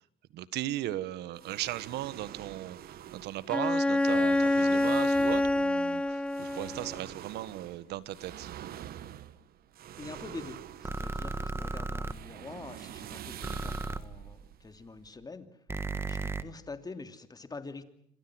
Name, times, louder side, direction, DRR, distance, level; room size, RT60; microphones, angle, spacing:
voice 1, 0.3-8.5, right 14 dB, 80° right, 16 dB, 1.6 m, -37 dB
sound 1, 1.4-15.3, right 11 dB, 65° right, 1.5 m, -46 dB
Bowed string instrument, 3.5-7.0, left 1 dB, 5° left, 1.0 m, -26 dB
voice 2, 10.0-15.6 16.0-17.8, left 3 dB, 25° left, 9 dB, 2.9 m, -45 dB
sound 2, 10.8-12.1 13.4-14.0 15.7-16.4, right 3 dB, 15° right, 1.4 m, -34 dB
28.0 x 26.0 x 6.3 m, 0.67 s
cardioid pair, 110°, 17 cm